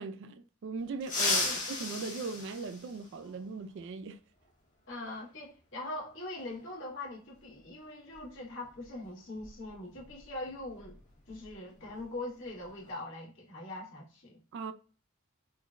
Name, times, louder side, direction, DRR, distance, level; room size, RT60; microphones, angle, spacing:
voice 1, 0.0-4.2 14.5-14.7, right 4 dB, 55° right, 0.3 m, -39 dB
sound 1, 1.0-3.4 5.1-5.2 6.4-6.5 8.1-8.3 8.6-8.9 9.3-11.5 11.8-12.0 12.5-12.9, left 3 dB, 35° left, 1.5 m, -35 dB
voice 2, 4.9-11.0 11.3-14.4, left 2 dB, 60° left, 1.3 m, -42 dB
3.7 x 2.2 x 2.4 m
head